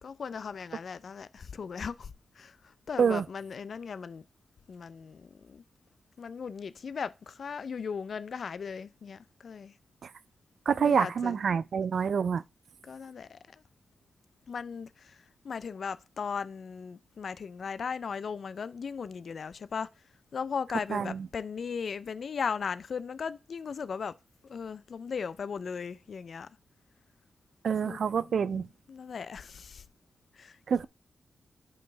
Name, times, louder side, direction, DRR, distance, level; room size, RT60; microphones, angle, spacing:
voice 1, 0.0-4.2 4.7-5.6 6.2-9.7 10.8-11.4 12.8-13.6 14.5-19.9 20.3-24.1 24.4-26.5 27.8-28.0 28.3-29.8 30.4-30.6, left 6 dB, 60° left, 0.5 m, -37 dB
voice 2, 10.7-12.4 20.9-21.3 27.6-28.7 30.7-30.9, right 6 dB, 65° right, 0.3 m, -27 dB
9.3 x 5.4 x 3.3 m
wide cardioid pair, 105°, 0 cm